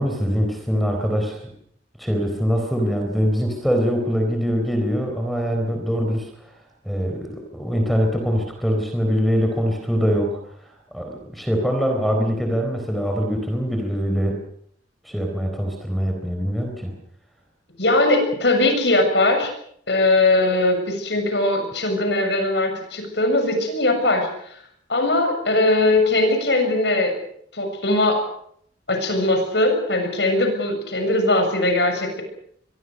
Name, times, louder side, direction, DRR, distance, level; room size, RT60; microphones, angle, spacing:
voice 1, 0.0-1.4 2.0-6.3 6.8-10.4 10.9-14.4 15.0-16.9, equal, ahead, 4 dB, 4.0 m, -23 dB
voice 2, 17.8-19.5 19.9-24.6 24.9-27.1 27.5-28.2 28.9-32.2, left 2 dB, 70° left, 6 dB, 7.2 m, -20 dB
24.5 x 22.5 x 6.5 m, 0.68 s
head